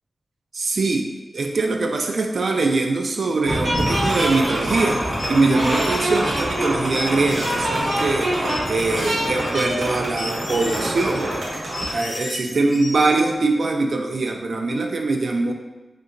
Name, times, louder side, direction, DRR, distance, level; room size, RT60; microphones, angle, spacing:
voice 1, 0.5-1.1 1.3-11.5 11.9-15.5, right 3 dB, 65° right, 3 dB, 0.4 m, -22 dB
sound 1, 3.4-12.0, right 1 dB, 85° right, 0.8 m, -25 dB
sound 2, 3.7-13.3, left 1 dB, 70° left, 0.6 m, -35 dB
3.3 x 2.8 x 2.5 m, 1.1 s
wide cardioid pair, 105°, 0 cm